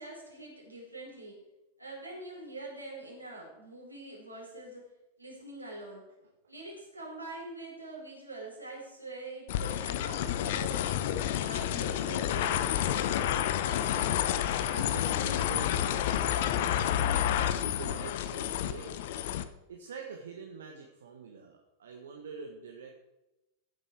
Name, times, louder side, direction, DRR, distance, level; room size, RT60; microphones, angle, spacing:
voice 1, 0.0-1.4 1.8-4.9 5.2-6.0 6.5-10.9 11.4-13.0, right 2 dB, 85° right, -3 dB, 4.8 m, -44 dB
sound 1, 9.5-19.4, left 11 dB, 55° left, 0.8 m, -30 dB
voice 2, 13.4-19.0 19.7-23.0, right 5 dB, 65° right, 2 dB, 1.5 m, -46 dB
15.5 x 9.0 x 4.7 m, 0.97 s
figure-of-eight pair, 90°, 0 cm